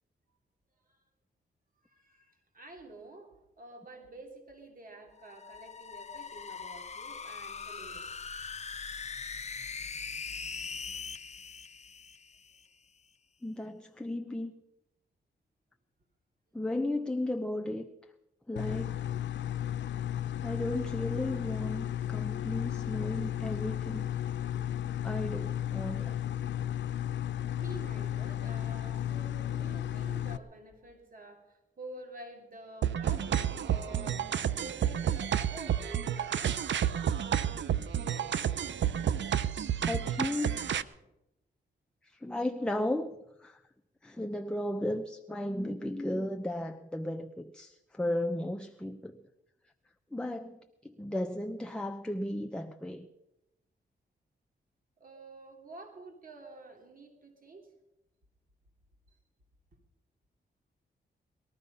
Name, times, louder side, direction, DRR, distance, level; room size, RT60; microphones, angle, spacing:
voice 1, 1.8-8.2 27.6-34.2 34.6-36.6 55.0-57.7 59.1-59.2, right 2 dB, 45° right, 3 dB, 3.1 m, -49 dB
sound 1, 5.2-12.7, left 5 dB, 35° left, 0.7 m, -41 dB
voice 2, 13.4-14.5 16.5-17.9 18.5-19.1 20.4-24.1 25.0-26.2 39.8-40.7 42.0-43.6 44.0-49.2 50.1-53.1, left 1 dB, 5° left, 5 dB, 0.8 m, -35 dB
sound 2, 18.6-30.4, left 11 dB, 70° left, 0.6 m, -34 dB
sound 3, 32.8-40.8, right 9 dB, 75° right, 0.7 m, -30 dB
20.0 x 13.0 x 5.5 m, 0.92 s
cardioid pair, 70°, 19 cm